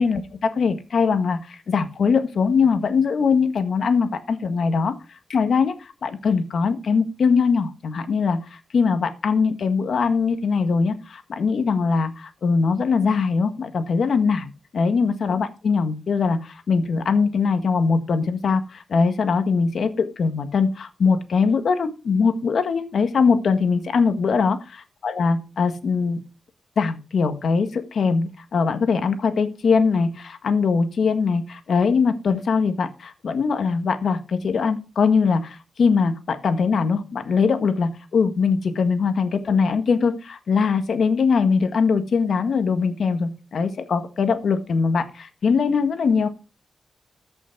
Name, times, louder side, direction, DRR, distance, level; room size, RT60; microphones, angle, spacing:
voice 1, 0.0-24.6 25.0-26.2 26.8-46.3, left 5 dB, 60° left, 9 dB, 1.6 m, -21 dB
14.0 x 6.3 x 4.5 m, 0.31 s
wide cardioid pair, 130°, 0 cm